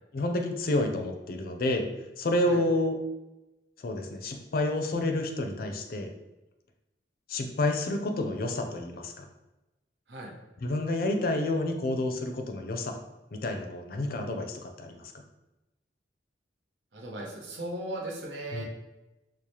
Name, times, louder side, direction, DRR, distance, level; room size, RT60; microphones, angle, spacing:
voice 1, 0.1-1.8 2.2-3.0 3.8-6.1 7.3-9.2 10.6-12.9 13.3-15.0 18.5-18.6, left 1 dB, 55° left, 4 dB, 0.4 m, -29 dB
voice 2, 16.9-18.6, right 1 dB, 85° right, -1 dB, 0.8 m, -37 dB
4.6 x 2.1 x 2.8 m, 1.0 s
head